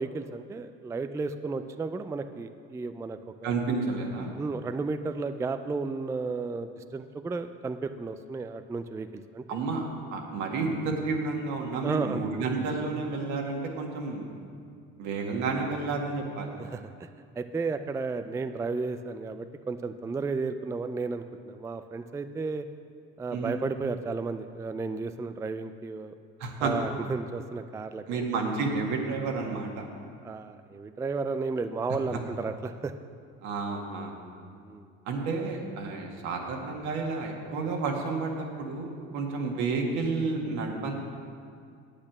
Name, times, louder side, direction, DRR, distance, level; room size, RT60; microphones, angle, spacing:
voice 1, 0.0-3.5 4.4-9.1 9.3-9.4 11.8-12.2 16.5-17.1 17.4-22.7 23.2-26.1 26.6-28.4 30.2-32.9 34.6-34.9, right 4 dB, 10° right, 9 dB, 0.3 m, -33 dB
voice 2, 3.4-4.3 9.5-9.9 10.1-14.4 15.0-16.5 23.3-23.6 26.4-26.7 28.1-29.9 33.4-34.2 35.1-40.9, right 4 dB, 75° right, 1 dB, 1.8 m, -31 dB
8.7 x 8.4 x 6.0 m, 2.3 s
supercardioid pair, 100°, 29 cm